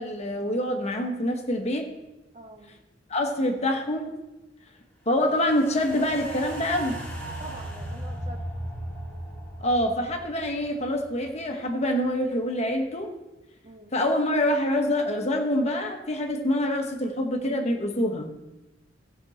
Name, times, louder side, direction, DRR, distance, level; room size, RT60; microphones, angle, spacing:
voice 1, 0.0-1.9 3.1-4.1 5.1-7.0 9.6-13.1 13.9-18.3, left 1 dB, 35° left, 3 dB, 1.3 m, -26 dB
voice 2, 2.3-2.8 7.4-8.5 13.6-13.9, right 1 dB, 40° right, 3 dB, 1.3 m, -44 dB
sound 1, 5.3-11.7 12.0-12.1, right 1 dB, 10° left, 2.4 m, -37 dB
16.0 x 6.1 x 4.3 m, 1.0 s
head